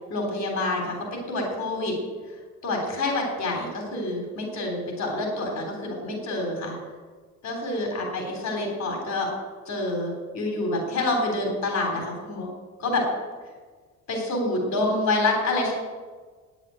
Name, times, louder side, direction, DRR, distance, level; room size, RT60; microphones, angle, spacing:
voice 1, 0.1-1.0 1.3-1.9 2.6-6.8 7.4-9.3 9.6-12.5 12.8-13.0 14.1-15.7, left 2 dB, 65° left, 1 dB, 3.4 m, -27 dB
9.8 x 9.0 x 8.8 m, 1.5 s
cardioid pair, 90°, 30 cm